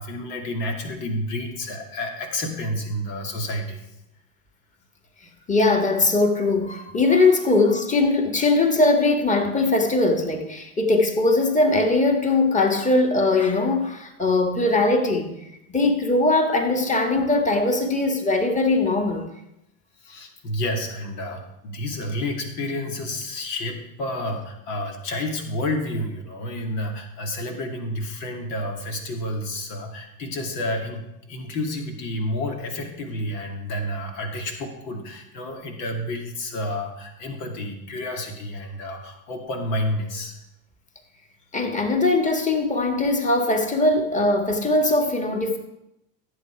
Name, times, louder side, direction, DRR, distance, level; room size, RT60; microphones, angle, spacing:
voice 1, 0.0-3.9 5.2-5.5 20.0-40.4, left 1 dB, 80° left, 2.7 m, -30 dB
voice 2, 5.5-15.3 15.7-19.3 41.5-45.6, left 2 dB, 15° left, 2.0 m, -20 dB
15.5 x 8.1 x 4.7 m
hypercardioid pair, 85°, 47 cm